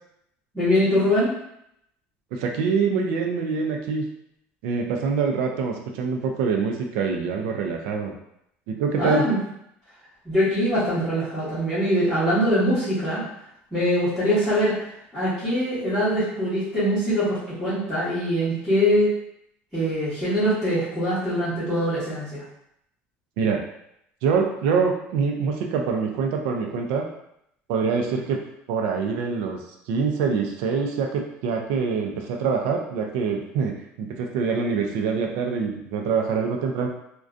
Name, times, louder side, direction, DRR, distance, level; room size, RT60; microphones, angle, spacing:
voice 1, 0.5-1.3 8.9-9.4 10.2-13.2 13.7-14.7 15.1-19.1 19.7-22.4, equal, ahead, -16 dB, 1.0 m, -23 dB
voice 2, 2.3-4.0 4.6-8.1 8.7-9.2 23.4-23.6 24.2-27.1 27.7-28.4 28.7-29.6 29.9-36.9, right 5 dB, 75° right, 2 dB, 0.3 m, -25 dB
2.4 x 2.2 x 2.4 m, 0.76 s
cardioid pair, 180°, 4 cm